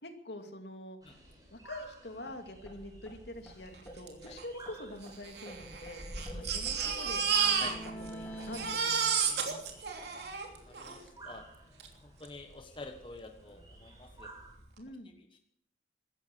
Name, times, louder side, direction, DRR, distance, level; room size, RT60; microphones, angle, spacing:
voice 1, 0.0-1.0 1.5-6.1 6.4-7.2 7.9-9.6 14.8-15.1, left 1 dB, 70° left, 6 dB, 2.5 m, -45 dB
sound 1, 1.0-14.6, right 1 dB, 20° right, 5.1 m, -51 dB
sound 2, 2.3-2.4 2.7-2.8 3.1-3.2 3.5-3.6 3.9-5.2 5.5-8.6, right 1 dB, 10° left, 4.6 m, -47 dB
Crying sobbing, 4.1-4.2 4.4-4.5 5.2-8.1 8.4-11.0 11.8-11.9 12.3-12.4, right 6 dB, 70° right, 3.1 m, -31 dB
voice 2, 6.2-6.5 6.8-6.9 7.6-7.8 9.7-9.9 10.7-11.5 12.0-14.3 15.0-15.4, left 3 dB, 30° left, 5 dB, 1.3 m, -49 dB
16.5 x 14.0 x 6.3 m, 0.69 s
head